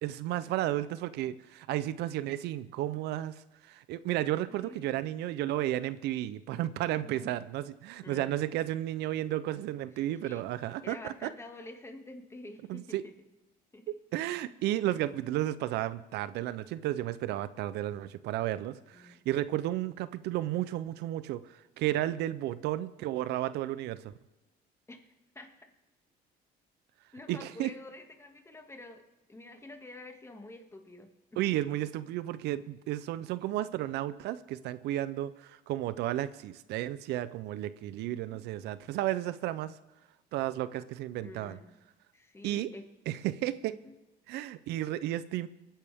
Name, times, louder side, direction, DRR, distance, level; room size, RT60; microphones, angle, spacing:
voice 1, 0.0-11.3 12.7-13.0 14.1-24.1 27.3-27.7 31.4-39.7 40.3-41.6 42.4-42.7 43.1-43.8 44.3-45.5, right 14 dB, 80° right, 15 dB, 0.5 m, -33 dB
voice 2, 4.5-5.1 7.0-7.4 8.0-8.4 10.1-10.4 10.8-13.1 13.7-13.8 18.9-19.2 24.9-25.0 25.4-25.7 27.1-29.0 29.3-31.4 38.0-38.4 41.2-41.7 42.1-42.8 43.7-43.9, left 2 dB, 15° left, 4 dB, 2.0 m, -48 dB
24.5 x 10.0 x 3.5 m, 1.1 s
cardioid pair, 110°, 17 cm